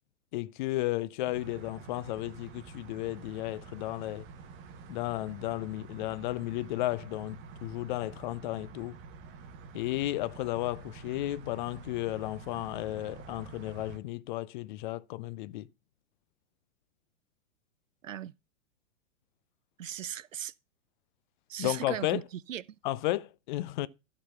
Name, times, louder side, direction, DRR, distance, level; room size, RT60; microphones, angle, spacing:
voice 1, 0.3-4.3 4.9-8.9 9.7-15.7 21.6-22.2 22.8-23.9, left 16 dB, 40° left, 0.5 m, -33 dB
sound 1, 1.3-14.0, right 5 dB, 35° right, 1.3 m, -48 dB
voice 2, 19.8-20.5 21.5-22.2 22.5-22.8, right 10 dB, 85° right, 0.5 m, -38 dB
12.0 x 4.0 x 5.7 m
hypercardioid pair, 110°, 37 cm